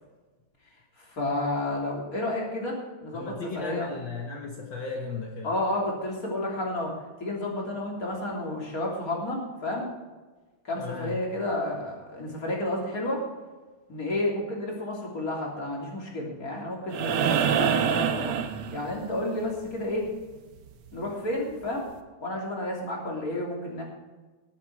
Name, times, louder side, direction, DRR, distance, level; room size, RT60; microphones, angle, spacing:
voice 1, 1.0-3.9 5.4-6.9 7.2-9.9 10.7-13.3 13.9-18.3 18.7-20.1 20.9-21.9 22.2-23.8, left 1 dB, 40° left, -2 dB, 3.5 m, -31 dB
voice 2, 3.1-5.5 10.8-11.2, left 4 dB, 60° left, 0 dB, 2.0 m, -35 dB
sound 1, 16.9-19.2 21.1-21.2, right 8 dB, 90° right, 1.9 m, -25 dB
19.5 x 8.5 x 4.6 m, 1.3 s
omnidirectional pair, 2.4 m